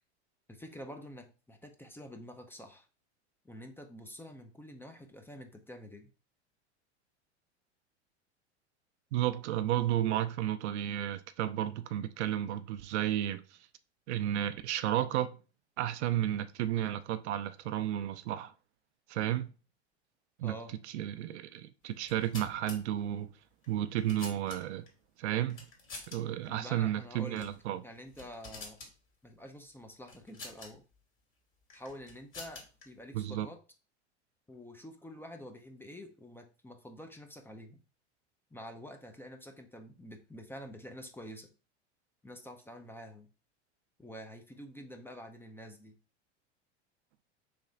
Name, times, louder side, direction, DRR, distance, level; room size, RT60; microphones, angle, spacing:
voice 1, 0.5-2.9 3.4-6.1 20.4-20.7 26.5-27.5 27.8-28.8 29.2-30.8 31.7-33.6 34.5-37.8 38.5-41.5 42.2-43.3 44.0-46.0, equal, 5° left, 0.5 m, -48 dB
voice 2, 9.1-13.6 14.1-15.4 15.8-18.5 19.1-19.5 20.4-20.5 20.9-23.3 23.7-24.8 25.2-25.6 26.1-27.8 33.1-33.5, right 12 dB, 70° right, 0.5 m, -32 dB
sound 1, 22.0-22.8 23.6-24.9 25.5-26.2 26.5-26.6 27.3-27.6 27.9-28.9 30.1-30.7 31.7-32.8, left 3 dB, 35° left, 1.9 m, -47 dB
3.3 x 3.1 x 3.8 m
hypercardioid pair, 90°, 35 cm